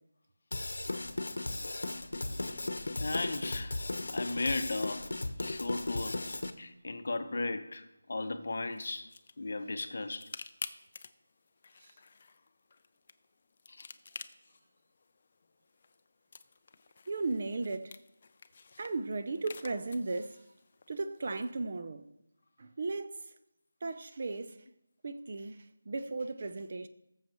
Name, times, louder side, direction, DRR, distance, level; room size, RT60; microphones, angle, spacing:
Drum kit / Drum, 0.5-6.5, left 2 dB, 75° left, 1.0 m, -36 dB
voice 1, 3.0-3.8 4.1-5.1 5.4-6.2 6.6-9.1 9.4-10.3 13.7-13.9, left 2 dB, 50° left, 0.9 m, -36 dB
sound 1, 8.5-21.5, left 4 dB, 30° left, 0.4 m, -51 dB
voice 2, 17.1-17.9 18.8-20.3 20.9-22.0 22.6-23.1 23.8-24.5 25.0-26.9, right 3 dB, 40° right, 0.6 m, -36 dB
19.0 x 7.2 x 3.0 m
figure-of-eight pair, 175°, 0 cm